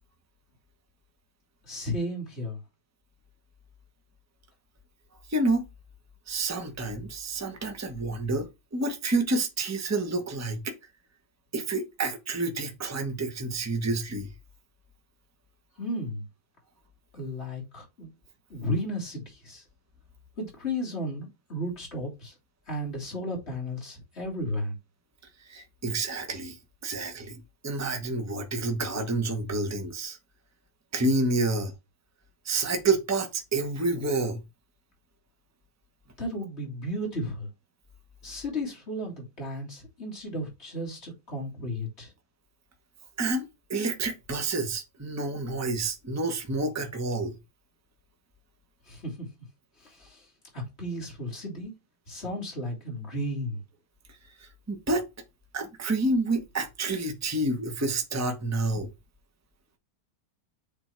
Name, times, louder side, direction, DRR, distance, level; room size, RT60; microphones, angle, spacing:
voice 1, 1.6-2.6 15.8-16.2 17.1-18.1 18.5-19.6 20.4-22.3 22.7-24.8 36.2-37.5 38.2-42.1 48.9-49.3 49.8-50.3 50.5-51.7 52.1-53.6, equal, 35° left, 3.6 m, -34 dB
voice 2, 5.3-5.6 6.3-10.7 11.5-14.3 25.5-26.6 26.8-30.2 30.9-31.7 32.4-34.4 43.2-43.4 43.7-47.4 54.4-55.0 55.5-58.9, right 2 dB, 10° right, 1.0 m, -29 dB
7.1 x 4.0 x 4.5 m
omnidirectional pair, 1.9 m